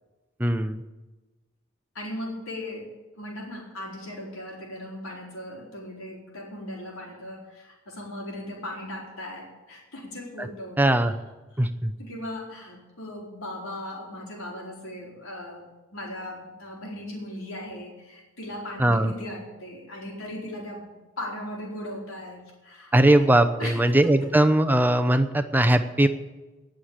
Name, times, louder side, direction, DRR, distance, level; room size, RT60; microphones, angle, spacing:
voice 1, 0.4-0.8 10.4-10.5 10.8-11.1 11.6-11.9 18.8-19.1 22.9-26.1, right 1 dB, 10° right, 8 dB, 0.7 m, -20 dB
voice 2, 1.9-10.8 11.5-11.7 12.0-15.6 15.9-23.3 23.6-23.8 24.2-24.3, left 1 dB, 90° left, -1 dB, 4.4 m, -38 dB
19.0 x 6.6 x 8.8 m, 1.2 s
head